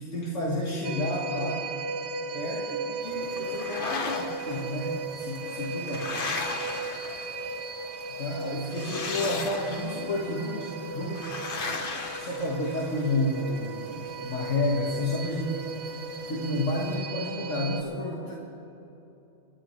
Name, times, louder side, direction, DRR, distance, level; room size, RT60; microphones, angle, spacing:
voice 1, 0.0-1.7 2.3-6.2 8.2-11.3 12.2-15.6 16.3-18.3, left 1 dB, 85° left, -3 dB, 1.8 m, -30 dB
sound 1, 0.8-17.8, right 3 dB, 65° right, 1.1 m, -36 dB
sound 2, 3.0-17.0, left 1 dB, 35° left, 2.2 m, -52 dB
sound 3, 3.4-4.6 5.4-7.6 8.7-10.1 11.1-13.0, left 3 dB, 50° left, 1.1 m, -35 dB
27.0 x 12.0 x 3.2 m, 3.0 s
omnidirectional pair, 1.2 m